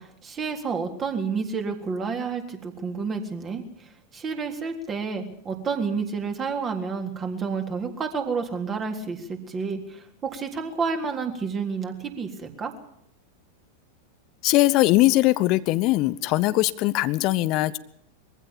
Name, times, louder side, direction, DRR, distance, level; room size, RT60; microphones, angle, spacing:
voice 1, 0.0-3.6 4.1-12.7, right 5 dB, 25° right, 4 dB, 3.6 m, -30 dB
voice 2, 14.4-17.8, left 18 dB, 40° left, 15 dB, 0.9 m, -21 dB
23.0 x 15.5 x 7.4 m, 0.72 s
figure-of-eight pair, 90°, 0 cm